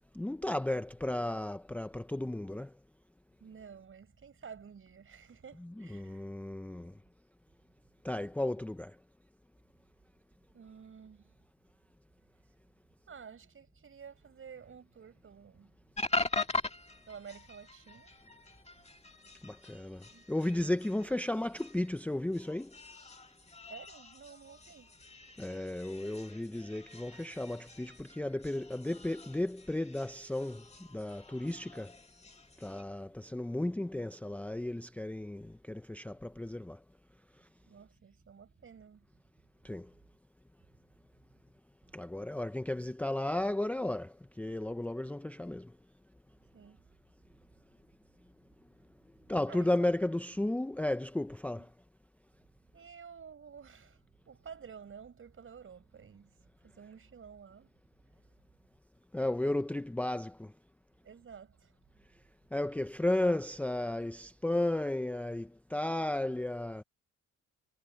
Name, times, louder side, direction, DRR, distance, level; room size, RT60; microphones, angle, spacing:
voice 1, 0.1-2.7 5.8-6.9 8.0-9.0 19.4-22.8 25.4-30.6 30.9-31.9 32.6-36.8 39.6-39.9 41.9-45.7 49.3-51.7 59.1-60.5 62.5-66.8, left 1 dB, 5° left, 0.6 m, -34 dB
voice 2, 3.4-6.3 10.5-11.4 13.1-15.8 17.1-18.2 20.1-20.2 20.5-21.1 23.7-24.9 37.6-39.1 46.5-46.9 47.4-47.8 49.2-49.7 51.6-51.7 52.7-57.7 61.0-61.7, right 7 dB, 45° right, 5.1 m, -52 dB
sound 1, 16.0-32.8, left 3 dB, 20° left, 1.8 m, -42 dB
cardioid pair, 105°, 29 cm